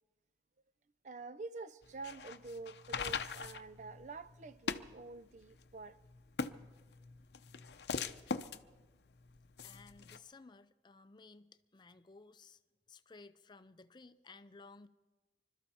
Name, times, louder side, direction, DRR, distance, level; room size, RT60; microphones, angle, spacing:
voice 1, 1.0-6.0, right 3 dB, 40° right, 0.4 m, -47 dB
sound 1, 1.8-10.2, left 5 dB, 65° left, 0.6 m, -42 dB
voice 2, 9.6-12.6 12.9-14.9, left 3 dB, 25° left, 0.5 m, -57 dB
25.5 x 12.5 x 4.3 m
head